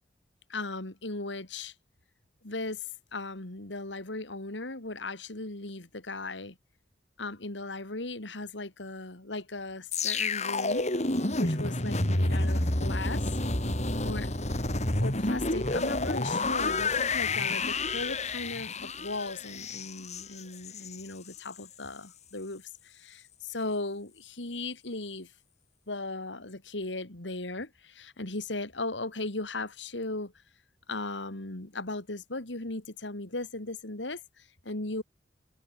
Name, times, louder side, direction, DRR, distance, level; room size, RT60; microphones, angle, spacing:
voice 1, 0.5-1.7 2.4-6.6 7.2-10.9 11.4-13.3 14.0-14.3 15.0-25.3 25.9-30.3 30.9-35.0, left 2 dB, 85° left, 3.0 m, -37 dB
sound 1, 9.9-21.0 21.3-21.6, left 2 dB, 40° left, 3.7 m, -29 dB
head